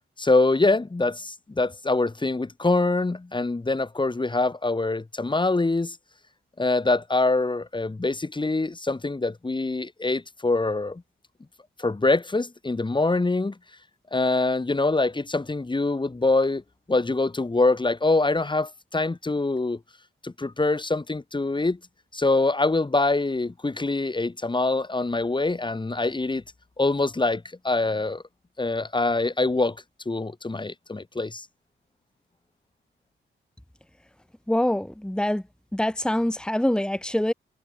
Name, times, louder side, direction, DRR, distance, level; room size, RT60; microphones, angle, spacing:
voice 1, 0.2-6.0 6.6-11.0 11.8-13.6 14.1-16.6 16.9-19.8 20.2-21.8 22.1-26.4 26.8-28.2 28.6-31.5, left 2 dB, 20° left, 2.5 m, -24 dB
voice 2, 34.5-35.4 35.7-37.3, left 1 dB, 5° left, 2.4 m, -24 dB
wide cardioid pair, 115°, 21 cm